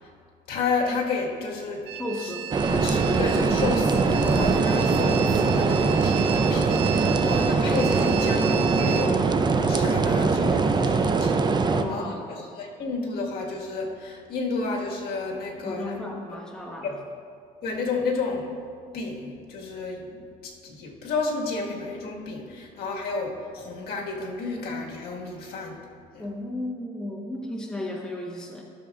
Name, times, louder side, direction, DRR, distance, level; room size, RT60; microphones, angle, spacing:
voice 1, 0.5-1.9 2.2-2.3 2.7-11.4 11.9-16.0 17.6-18.6 18.9-25.8 26.1-26.2, left 3 dB, 65° left, -1 dB, 1.6 m, -31 dB
sound 1, 1.9-9.1, right 11 dB, 85° right, 0.5 m, -35 dB
voice 2, 2.0-2.5 11.7-12.4 15.6-17.0 26.2-28.6, left 1 dB, 5° left, -1 dB, 1.0 m, -34 dB
sound 2, 2.5-11.8, right 4 dB, 25° right, 0.5 m, -22 dB
14.0 x 6.7 x 2.4 m, 2.3 s
cardioid pair, 110°, 17 cm